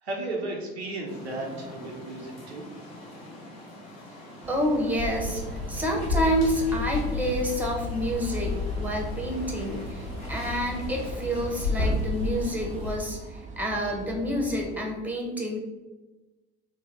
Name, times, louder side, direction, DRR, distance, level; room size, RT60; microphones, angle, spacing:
voice 1, 0.0-2.7, right 2 dB, 90° right, -1 dB, 0.7 m, -34 dB
sound 1, 1.1-11.9, left 1 dB, 55° left, 1.1 m, -45 dB
sound 2, 4.4-14.8, right 5 dB, 25° right, 0.4 m, -43 dB
voice 2, 4.5-15.6, equal, 5° right, 1 dB, 0.9 m, -28 dB
Water, 5.0-12.9, left 2 dB, 85° left, 1.1 m, -32 dB
3.1 x 2.3 x 4.1 m, 1.1 s
figure-of-eight pair, 60°, 31 cm